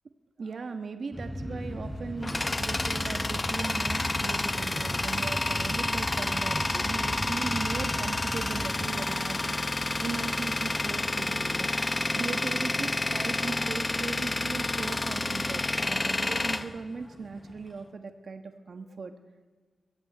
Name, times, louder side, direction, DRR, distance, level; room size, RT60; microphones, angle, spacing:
voice 1, 0.4-19.1, right 4 dB, 50° right, 7 dB, 1.3 m, -38 dB
sound 1, 1.1-8.9, equal, ahead, 3.9 m, -37 dB
Tools, 1.8-17.6, left 2 dB, 20° left, 0.9 m, -29 dB
22.5 x 22.0 x 9.3 m, 1.5 s
wide cardioid pair, 160°, 0 cm